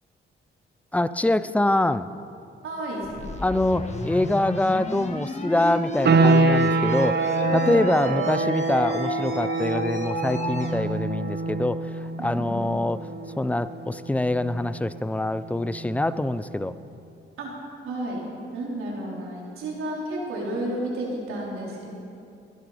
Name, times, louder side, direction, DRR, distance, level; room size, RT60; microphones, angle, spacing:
voice 1, 0.9-2.1 3.4-13.0 13.4-16.8, left 1 dB, 5° left, 14 dB, 0.5 m, -25 dB
voice 2, 2.6-3.1 7.3-7.9 12.2-12.6 17.4-17.5 17.8-18.2 18.5-21.9, right 1 dB, 80° right, -4 dB, 4.0 m, -31 dB
sound 1, 3.0-10.8, left 2 dB, 35° left, 1.8 m, -33 dB
sound 2, 6.0-16.6, right 3 dB, 50° right, 1.1 m, -26 dB
21.0 x 10.5 x 5.1 m, 2.6 s
cardioid pair, 70°, 21 cm